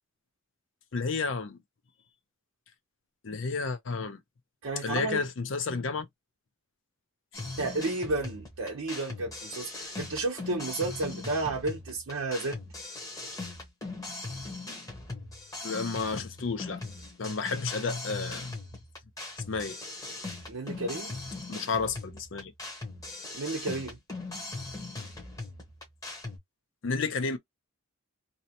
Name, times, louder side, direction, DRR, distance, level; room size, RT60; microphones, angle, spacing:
voice 1, 0.9-1.6 3.2-4.2 4.8-6.1 15.6-16.8 17.2-18.6 19.5-19.8 21.5-22.5 26.8-27.4, left 4 dB, 60° left, 0.5 m, -31 dB
voice 2, 4.6-5.2 7.6-12.6 20.5-21.2 23.3-24.0, right 2 dB, 65° right, 0.7 m, -32 dB
sound 1, 7.3-26.4, left 2 dB, 15° left, 0.8 m, -40 dB
2.7 x 2.1 x 2.8 m
head